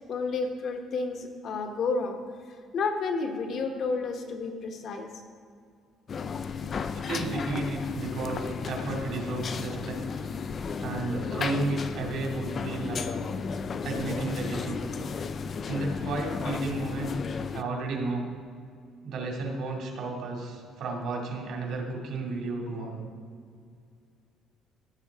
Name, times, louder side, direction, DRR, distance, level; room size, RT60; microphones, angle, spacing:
voice 1, 0.1-2.2 2.7-5.1, left 4 dB, 55° left, 4 dB, 1.3 m, -30 dB
sound 1, 6.1-17.6, left 5 dB, 35° left, 0.4 m, -34 dB
voice 2, 6.9-10.0 10.8-13.3 13.8-14.8 15.7-17.1 17.5-18.3 19.0-23.0, right 3 dB, 70° right, 0 dB, 2.4 m, -33 dB
15.0 x 7.1 x 3.6 m, 2.2 s
cardioid pair, 135°, 0 cm